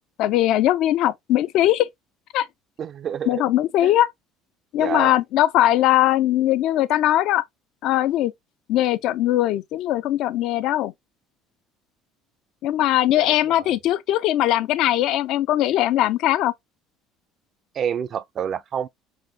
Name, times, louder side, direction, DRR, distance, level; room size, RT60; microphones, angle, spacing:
voice 1, 0.2-1.9 2.3-2.5 3.3-4.1 4.7-7.4 7.8-8.3 8.7-10.9 12.6-16.5, left 13 dB, 65° left, 0.4 m, -20 dB
voice 2, 2.8-3.5 3.8-3.9 4.8-5.2 13.1-13.8 17.7-18.9, right 8 dB, 40° right, 0.3 m, -29 dB
4.1 x 2.8 x 2.6 m
cardioid pair, 115°, 0 cm